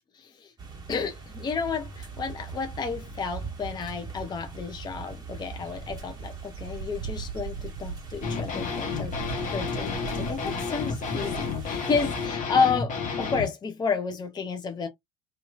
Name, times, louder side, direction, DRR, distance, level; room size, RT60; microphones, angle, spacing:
voice 1, 0.2-0.5 0.9-9.2 9.5-14.9, left 5 dB, 25° left, 0.5 m, -31 dB
sound 1, 0.6-12.3, right 5 dB, 20° right, 1.3 m, -41 dB
Dog / Bird, 5.4-11.7, right 5 dB, 50° right, 0.8 m, -41 dB
sound 2, 8.2-13.5, left 5 dB, 45° left, 1.1 m, -31 dB
2.8 x 2.4 x 2.3 m
figure-of-eight pair, 60°, 19 cm